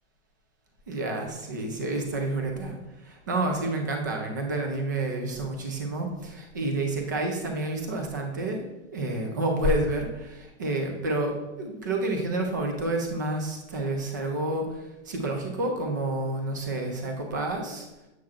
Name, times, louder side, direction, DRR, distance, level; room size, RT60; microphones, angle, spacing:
voice 1, 0.9-8.6 8.9-17.9, right 2 dB, 20° right, 3 dB, 0.3 m, -29 dB
7.6 x 7.0 x 2.3 m, 1.0 s
hypercardioid pair, 165°, 36 cm